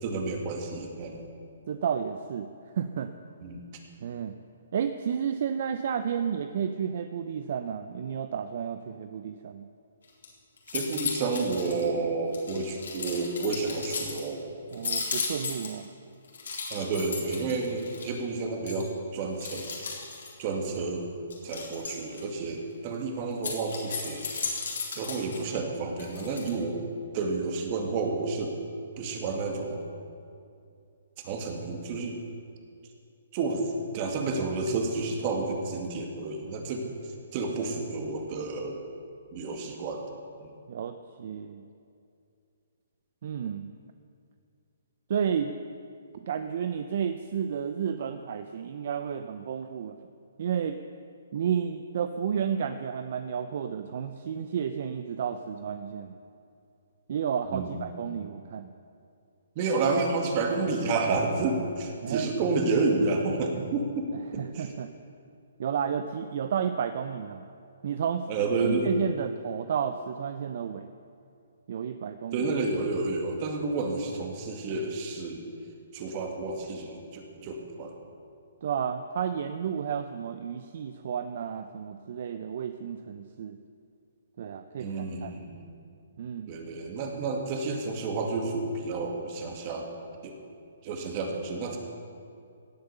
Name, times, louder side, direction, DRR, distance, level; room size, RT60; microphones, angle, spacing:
voice 1, 0.0-1.3 3.4-3.6 10.7-14.4 14.8-14.9 16.7-19.9 20.4-21.1 21.4-24.6 24.9-26.8 27.1-28.5 29.0-29.8 31.2-32.2 33.3-33.6 33.9-36.9 37.3-38.8 39.3-40.0 40.4-40.5 57.5-57.9 59.6-64.7 68.3-68.9 72.3-75.4 75.9-78.1 84.8-85.7 86.5-89.9 90.2-90.4 90.8-91.8, right 3 dB, 35° right, 2 dB, 2.1 m, -30 dB
voice 2, 1.7-2.5 2.7-3.1 4.0-4.3 4.7-9.7 14.7-15.9 40.7-41.7 43.2-43.7 45.1-45.6 46.3-50.0 50.4-50.8 51.3-56.1 57.1-58.7 62.0-62.3 64.4-64.9 65.6-67.5 67.8-68.3 68.6-70.9 71.7-72.5 78.6-83.6 84.4-85.3 86.2-86.5, right 7 dB, 55° right, 9 dB, 0.6 m, -32 dB
sound 1, 10.0-10.3 10.6-11.8 12.3-14.2 14.7-15.8 16.3-18.2 18.7-18.8 19.4-20.4 21.3-22.2 23.3-25.4 26.0-26.5, left 5 dB, 75° left, 3.9 m, -35 dB
17.5 x 8.1 x 6.8 m, 2.5 s
hypercardioid pair, 145°, 0 cm